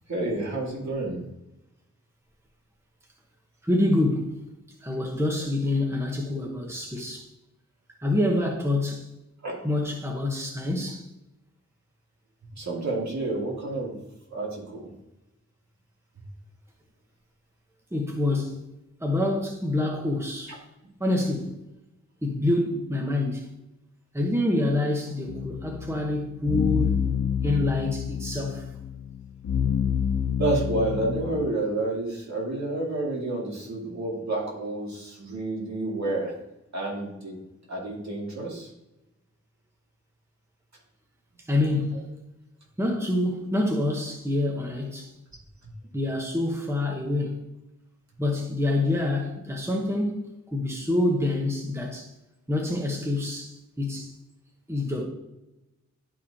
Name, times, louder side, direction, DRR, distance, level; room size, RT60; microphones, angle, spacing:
voice 1, 0.1-1.2 9.4-9.6 12.6-14.0 14.3-14.9 30.4-36.3 36.7-37.4 37.7-38.7 45.6-45.7, right 2 dB, 65° right, 2.5 m, -29 dB
voice 2, 3.6-4.4 4.8-7.3 8.0-9.0 9.6-11.0 17.9-18.6 19.0-20.5 21.0-21.6 22.2-23.5 24.1-27.1 27.4-28.6 41.5-42.2 42.8-45.1 45.9-47.4 48.2-52.1 52.5-54.1 54.7-55.1, left 1 dB, 10° right, 1.1 m, -26 dB
sound 1, 25.3-31.5, left 7 dB, 70° left, 0.7 m, -28 dB
11.5 x 4.9 x 2.9 m
wide cardioid pair, 80°, 29 cm